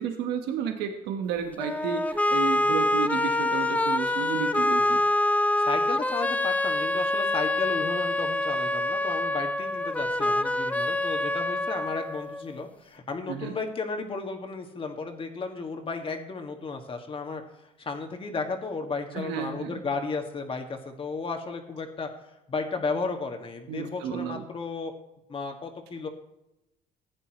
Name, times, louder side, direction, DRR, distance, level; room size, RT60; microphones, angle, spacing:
voice 1, 0.0-5.0 13.3-13.5 19.1-19.8 23.7-24.5, right 7 dB, 90° right, 5 dB, 1.2 m, -32 dB
sound 1, 1.6-12.6, left 2 dB, 10° left, 0.5 m, -26 dB
voice 2, 5.6-24.9 25.3-26.1, left 4 dB, 30° left, 3 dB, 1.8 m, -34 dB
15.5 x 9.8 x 3.0 m, 0.91 s
cardioid pair, 110°, 17 cm